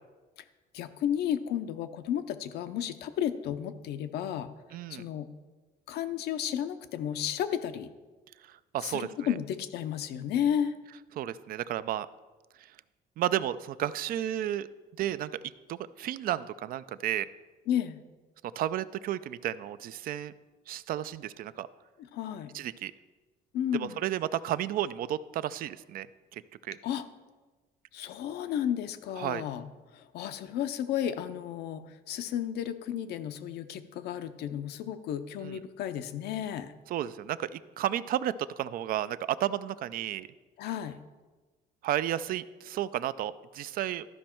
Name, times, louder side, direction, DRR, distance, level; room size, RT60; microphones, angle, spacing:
voice 1, 0.7-4.5 4.9-5.3 5.9-7.9 8.8-10.7 17.7-18.0 22.0-22.6 23.5-24.0 26.8-27.0 27.9-36.7 40.6-41.0, left 9 dB, 75° left, 10 dB, 0.6 m, -33 dB
voice 2, 4.7-5.0 8.4-9.1 11.2-12.1 12.6-12.7 13.2-14.7 15.0-15.3 15.7-17.3 18.6-20.3 20.7-21.7 22.5-22.9 23.8-26.1 26.3-26.8 29.2-29.5 35.4-35.6 36.9-40.3 41.8-44.1, right 12 dB, 60° right, 16 dB, 0.4 m, -32 dB
12.5 x 5.2 x 4.4 m, 1.3 s
cardioid pair, 110°, 17 cm